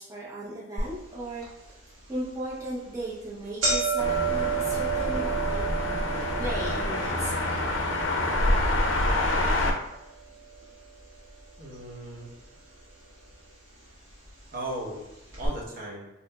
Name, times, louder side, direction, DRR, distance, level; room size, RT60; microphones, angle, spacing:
voice 1, 0.0-5.6 6.4-7.6, right 1 dB, 15° right, -7 dB, 0.5 m, -36 dB
sound 1, 0.8-0.9 1.4-1.5 2.3-2.5 2.9-3.0 3.2-11.4 11.7-12.4 13.2-13.3 14.3-14.4 14.7-14.8 15.3-15.5, right 6 dB, 90° right, 1.4 m, -32 dB
sound 2, 4.0-9.7, left 1 dB, 80° left, 0.5 m, -27 dB
voice 2, 11.6-12.3 14.5-15.1 15.3-16.1, right 1 dB, 50° right, -3 dB, 0.8 m, -36 dB
3.7 x 2.8 x 2.2 m, 0.97 s
head